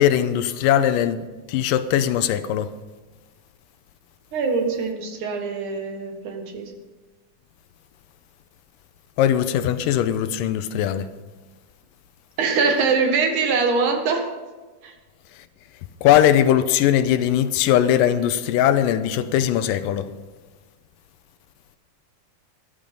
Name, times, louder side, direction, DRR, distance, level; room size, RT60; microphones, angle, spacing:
voice 1, 0.0-2.7 9.2-11.1 15.3-15.5 16.0-20.1, left 10 dB, 85° left, 2.3 m, -20 dB
voice 2, 4.3-6.7 12.4-14.2 14.8-14.9, right 4 dB, 65° right, 3.0 m, -23 dB
14.0 x 11.5 x 5.3 m
omnidirectional pair, 4.0 m